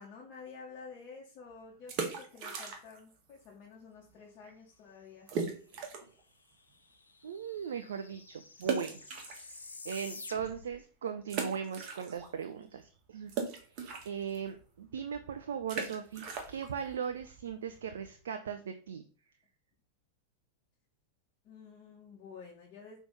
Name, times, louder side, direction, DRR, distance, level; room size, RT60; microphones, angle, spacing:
voice 1, 0.0-5.3 21.4-23.0, left 5 dB, 40° left, -3 dB, 1.7 m, -50 dB
sound 1, 1.8-3.1 3.4-3.5 4.1-4.2 4.5-4.6 5.3-6.2 6.7-6.8 8.6-9.9 10.4-10.5 11.3-12.5 12.7-18.2, right 5 dB, 40° right, 1.6 m, -39 dB
sound 2, 6.3-6.4 6.6-10.8, left 3 dB, 75° left, 0.9 m, -49 dB
voice 2, 7.2-9.1 9.3-19.0, right 7 dB, 65° right, 8 dB, 0.5 m, -39 dB
6.0 x 3.5 x 5.4 m, 0.42 s
figure-of-eight pair, 90°, 0 cm